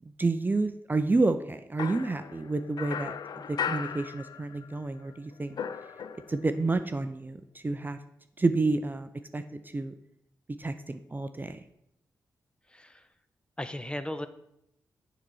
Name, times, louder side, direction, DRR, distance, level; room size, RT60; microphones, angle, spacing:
voice 1, 0.2-5.6 6.3-8.0 8.4-9.9 10.6-11.6, right 3 dB, 25° right, 9 dB, 0.5 m, -29 dB
sound 1, 1.8-4.8 5.1-6.6, left 7 dB, 65° left, 0.4 m, -37 dB
voice 2, 12.7-13.1 13.6-14.3, left 1 dB, 15° left, 11 dB, 0.7 m, -36 dB
7.2 x 4.0 x 6.2 m, 0.80 s
cardioid pair, 50°, 7 cm